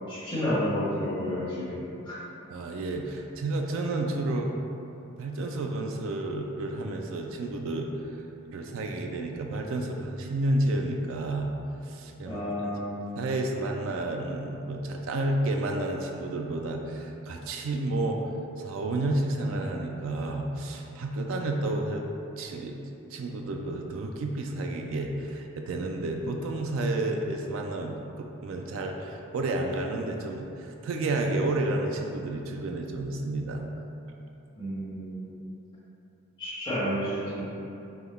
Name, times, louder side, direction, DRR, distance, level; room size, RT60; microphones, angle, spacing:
voice 1, 0.1-2.2 12.2-13.1 34.6-35.4 36.4-37.4, equal, 20° left, -12 dB, 1.5 m, -31 dB
voice 2, 2.5-4.5 5.2-8.2 8.4-11.5 11.8-12.7 13.2-18.3 18.6-22.0 22.4-22.8 23.1-33.7, right 2 dB, 65° right, 2 dB, 0.3 m, -31 dB
5.5 x 2.2 x 3.4 m, 2.8 s
head